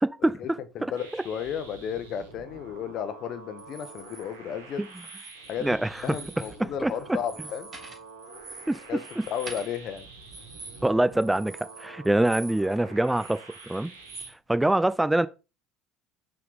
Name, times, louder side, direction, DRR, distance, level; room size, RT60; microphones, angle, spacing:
voice 1, 0.0-0.6 1.1-1.2 4.8-4.9 5.6-6.2 6.6-7.2 8.7-9.2 10.8-11.5 11.8-13.4 13.7-13.9 14.5-15.3, right 1 dB, 10° right, 0.4 m, -25 dB
voice 2, 0.7-4.8 5.5-5.8 6.0-7.7 8.9-10.1, left 8 dB, 55° left, 0.9 m, -33 dB
sound 1, 1.0-14.3, right 3 dB, 90° right, 1.5 m, -47 dB
sound 2, 3.6-4.2 4.8-5.6 5.9-6.6 6.9-12.7 13.0-14.3, right 3 dB, 35° right, 3.3 m, -45 dB
5.9 x 3.7 x 4.7 m
hypercardioid pair, 65°, 0 cm